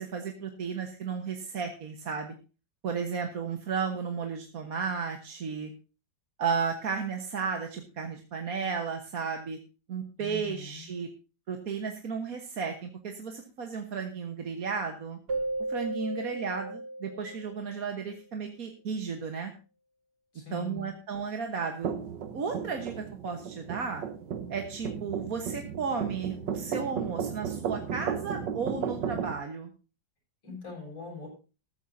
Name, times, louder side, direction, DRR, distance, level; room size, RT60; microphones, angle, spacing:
voice 1, 0.0-2.3 2.8-5.7 6.4-9.6 9.9-11.1 11.5-15.2 15.7-19.5 20.5-21.9 22.3-24.1 24.5-29.7, right 5 dB, 50° right, 4 dB, 1.7 m, -34 dB
voice 2, 10.2-10.9 20.3-20.9 30.4-31.3, left 4 dB, 80° left, -2 dB, 8.0 m, -42 dB
Keyboard (musical), 15.3-18.0, right 2 dB, 35° right, 1.4 m, -35 dB
sound 1, 21.8-29.3, right 7 dB, 70° right, 1.7 m, -35 dB
14.0 x 14.0 x 2.7 m, 0.32 s
omnidirectional pair, 2.1 m